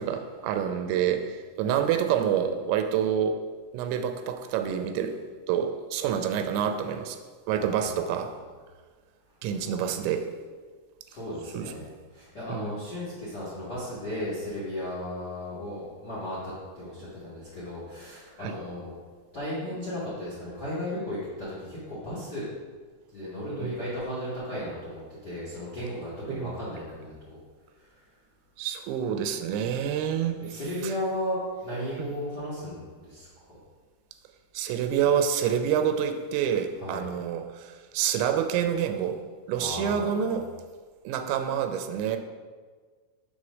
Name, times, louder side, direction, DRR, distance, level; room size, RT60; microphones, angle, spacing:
voice 1, 0.0-3.4 3.7-5.2 5.5-7.2 7.5-8.4 9.4-10.3 11.5-11.9 12.5-12.7 18.4-18.5 23.6-23.7 26.3-26.5 28.6-30.4 30.8-30.9 32.0-32.1 34.5-39.2 39.5-40.5 41.0-42.2, right 8 dB, 90° right, 7 dB, 2.9 m, -27 dB
voice 2, 7.5-8.4 9.5-9.8 11.1-19.0 19.3-22.4 23.1-27.4 27.8-28.0 30.4-33.3 36.8-37.0 39.6-40.4, left 1 dB, 65° left, -9 dB, 1.0 m, -35 dB
6.7 x 4.3 x 6.2 m, 1.5 s
omnidirectional pair, 5.1 m